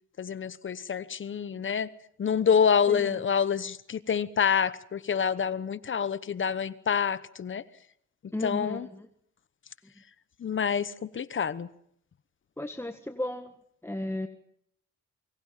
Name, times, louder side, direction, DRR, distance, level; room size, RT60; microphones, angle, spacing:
voice 1, 0.2-1.9 2.2-7.6 8.4-8.9 10.4-11.7, left 7 dB, 40° left, 1.1 m, -27 dB
voice 2, 2.9-3.2 8.3-9.1 12.6-13.5 13.8-14.3, left 1 dB, 10° left, 1.6 m, -34 dB
28.0 x 24.5 x 5.8 m
cardioid pair, 90°, 30 cm